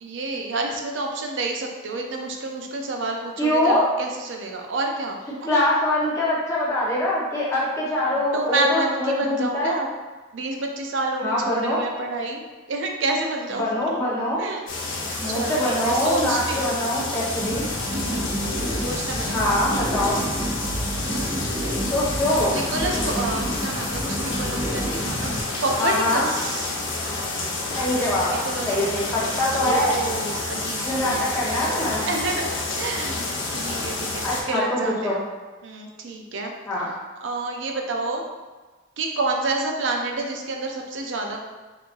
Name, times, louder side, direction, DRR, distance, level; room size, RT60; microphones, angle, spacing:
voice 1, 0.0-5.6 8.3-9.9 10.3-12.4 12.7-14.0 14.4-14.7 15.2-16.7 17.9-18.3 18.8-19.5 21.0-21.5 22.3-25.3 25.6-26.7 28.5-31.3 32.0-35.2 35.6-36.5 37.2-38.3 39.0-41.4, right 2 dB, 65° right, 2 dB, 0.5 m, -29 dB
voice 2, 3.4-3.9 5.5-9.8 11.2-11.8 13.6-14.5 15.2-17.7 19.3-20.2 21.8-22.6 25.8-26.3 27.7-28.4 28.7-30.0 30.8-32.0 34.2-35.2 36.7-36.9, left 1 dB, 15° left, -8 dB, 0.9 m, -23 dB
sound 1, 14.7-34.4, left 2 dB, 70° left, 0.8 m, -29 dB
sound 2, 17.4-25.4, right 1 dB, 25° right, 1.2 m, -30 dB
4.6 x 2.6 x 2.5 m, 1.3 s
head